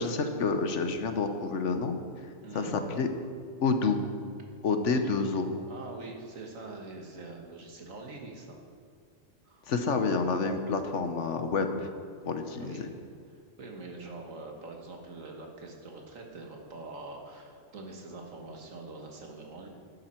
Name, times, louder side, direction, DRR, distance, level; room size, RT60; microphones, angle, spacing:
voice 1, 0.0-2.0 2.5-3.1 3.6-4.0 4.6-5.5 9.7-11.9 12.3-12.9, left 4 dB, 65° left, 7 dB, 1.2 m, -28 dB
voice 2, 2.4-2.7 4.9-5.1 5.7-8.6 9.4-9.7 12.6-12.9 13.6-19.7, right 3 dB, 80° right, 1 dB, 1.9 m, -44 dB
11.5 x 11.0 x 4.4 m, 2.2 s
omnidirectional pair, 1.3 m